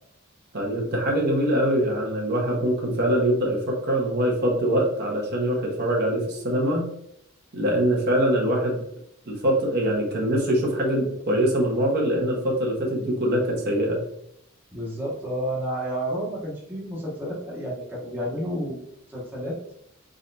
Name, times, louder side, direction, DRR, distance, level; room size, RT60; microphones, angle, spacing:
voice 1, 0.5-6.8 7.5-8.8 9.3-14.0, right 1 dB, 50° right, -2 dB, 1.2 m, -23 dB
voice 2, 14.7-18.8 19.1-19.6, equal, 10° right, -5 dB, 0.9 m, -30 dB
4.3 x 4.0 x 2.6 m, 0.72 s
head